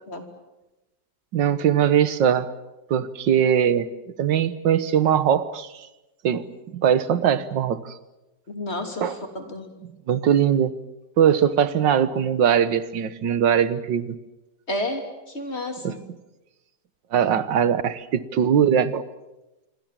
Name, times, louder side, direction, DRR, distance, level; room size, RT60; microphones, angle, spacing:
voice 1, 1.3-2.5 2.9-3.9 4.2-5.9 6.2-7.9 9.0-9.2 10.1-10.7 11.2-14.2 15.8-16.0 17.1-19.0, right 9 dB, 85° right, 14 dB, 1.8 m, -21 dB
voice 2, 8.5-9.7 14.7-16.0, left 1 dB, 35° left, 5 dB, 3.4 m, -31 dB
26.5 x 24.5 x 7.5 m, 1.0 s
omnidirectional pair, 1.9 m